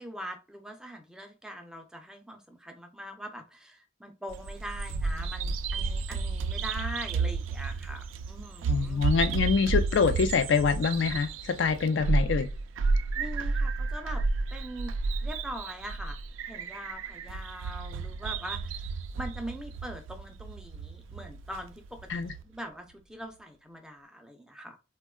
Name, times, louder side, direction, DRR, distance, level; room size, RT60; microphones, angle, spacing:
voice 1, 0.0-9.0 13.2-14.2 14.5-14.9 15.2-16.2 16.5-24.8, equal, 5° right, 0.4 m, -42 dB
Bird vocalization bird call bird song, 4.3-22.4, right 4 dB, 85° right, 0.3 m, -32 dB
voice 2, 8.7-12.5 22.1-22.3, left 5 dB, 70° left, 0.4 m, -25 dB
3.5 x 2.2 x 2.2 m
head